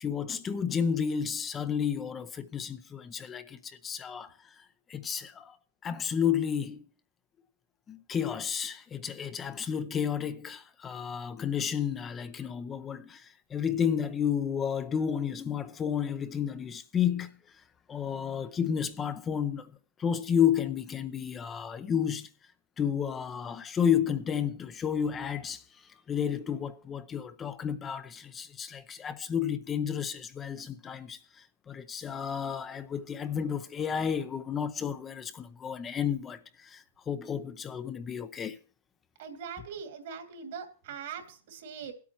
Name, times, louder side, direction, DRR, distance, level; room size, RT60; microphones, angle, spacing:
voice 1, 0.0-5.6 5.8-6.8 7.9-17.4 17.9-22.3 22.8-25.6 26.1-38.6, left 8 dB, 20° left, 0.7 m, -31 dB
voice 2, 39.2-41.9, right 7 dB, 65° right, 2.4 m, -41 dB
22.0 x 8.4 x 3.0 m
hypercardioid pair, 130°, 0 cm